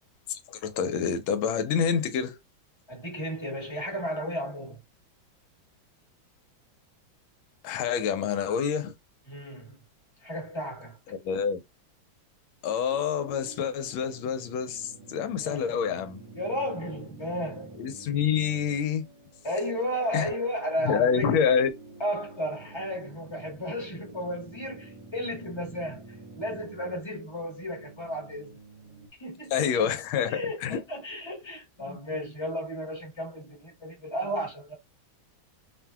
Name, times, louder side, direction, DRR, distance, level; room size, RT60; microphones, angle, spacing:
voice 1, 0.3-2.4 7.6-8.9 11.1-11.6 12.6-16.2 17.8-19.1 20.1-20.3 20.8-21.7 29.5-30.8 31.9-32.0, left 7 dB, 85° left, 1.4 m, -27 dB
voice 2, 2.9-4.8 9.3-9.8 10.2-11.0 15.4-15.8 16.3-17.8 19.4-21.5 22.0-26.0 26.4-28.5 29.2-29.9 30.3-34.7, equal, 20° left, 0.9 m, -33 dB
sound 1, 12.9-29.1, right 3 dB, 65° right, 0.8 m, -49 dB
3.0 x 2.6 x 2.2 m
omnidirectional pair, 2.2 m